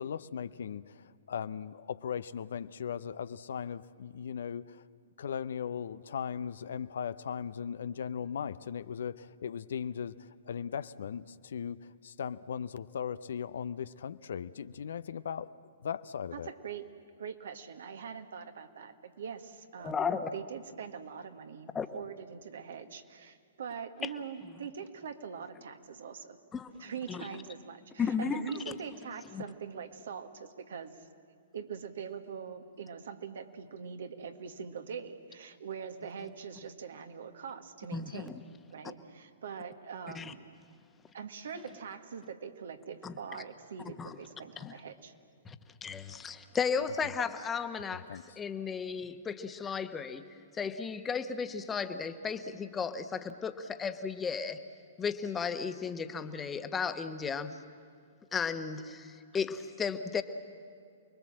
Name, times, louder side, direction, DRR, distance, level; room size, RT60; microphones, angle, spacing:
voice 1, 0.0-4.8 5.2-15.5 15.8-16.5 47.0-47.1 47.9-48.4, left 7 dB, 65° left, 15 dB, 0.6 m, -38 dB
voice 2, 16.3-16.9 17.2-26.4 26.8-31.1 31.5-38.4 38.7-40.5 41.1-45.1, right 7 dB, 65° right, 7 dB, 1.7 m, -43 dB
voice 3, 19.8-20.3 21.7-21.9 26.5-26.7 27.1-27.3 28.0-28.7 29.3-29.4 37.9-38.4 40.1-40.3 43.0-43.1 44.0-44.2 44.6-44.7 45.4-45.5 45.8-48.1 48.4-50.2 50.5-54.6 55.0-57.5 58.3-60.2, left 6 dB, 15° left, 9 dB, 1.3 m, -34 dB
29.0 x 21.0 x 7.6 m, 2.2 s
figure-of-eight pair, 115°, 0 cm